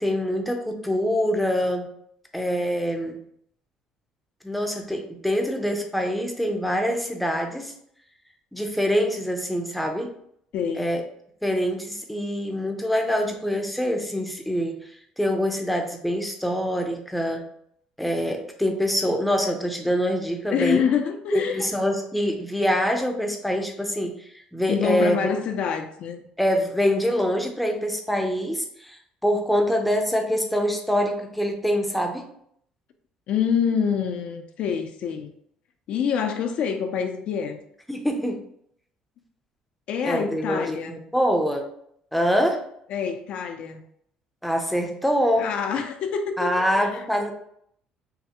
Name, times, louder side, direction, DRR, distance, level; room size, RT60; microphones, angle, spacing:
voice 1, 0.0-1.9 2.3-3.2 4.4-7.7 8.5-10.1 10.7-11.0 11.4-17.4 18.0-20.9 21.3-25.3 26.4-32.3 37.9-38.4 40.0-41.7 42.1-42.6 44.4-45.5 46.4-47.3, equal, ahead, 3 dB, 0.5 m, -25 dB
voice 2, 10.5-10.9 20.5-21.7 24.7-26.2 33.3-35.3 35.9-37.6 39.9-40.9 42.9-43.8 45.4-47.0, left 7 dB, 55° left, 6 dB, 0.4 m, -26 dB
5.7 x 2.0 x 2.8 m, 0.69 s
cardioid pair, 150°, 2 cm